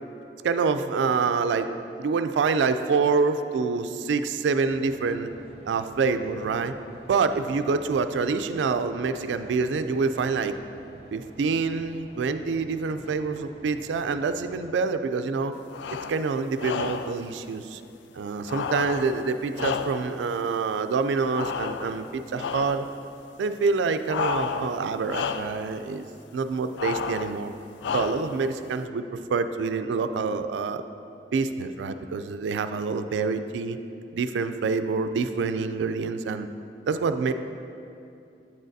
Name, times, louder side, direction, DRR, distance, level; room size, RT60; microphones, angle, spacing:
voice 1, 0.4-5.3 5.7-6.7 7.1-10.6 11.1-15.5 16.1-17.8 18.1-22.9 23.4-26.1 26.3-27.5 27.9-29.0 29.3-30.8 31.3-33.8 34.1-36.5 36.9-37.3, right 4 dB, 85° right, 9 dB, 0.3 m, -26 dB
sound 1, 4.6-14.7, right 1 dB, 35° right, 0.6 m, -48 dB
sound 2, 15.7-16.2 16.6-17.2 18.5-20.2 21.3-22.1 22.4-22.9 24.1-24.8 25.1-25.6 26.8-27.4 27.8-28.4, left 6 dB, 75° left, 0.3 m, -31 dB
8.5 x 6.3 x 2.6 m, 2.6 s
head